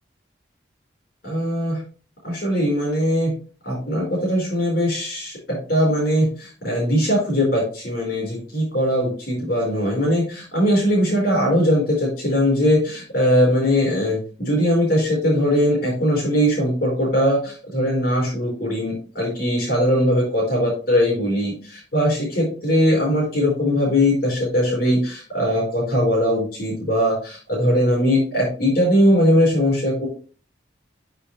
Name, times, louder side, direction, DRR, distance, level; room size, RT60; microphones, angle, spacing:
voice 1, 1.2-1.8 2.2-3.4 3.6-30.1, equal, 50° left, -4 dB, 4.3 m, -20 dB
6.8 x 6.6 x 3.2 m, 0.37 s
head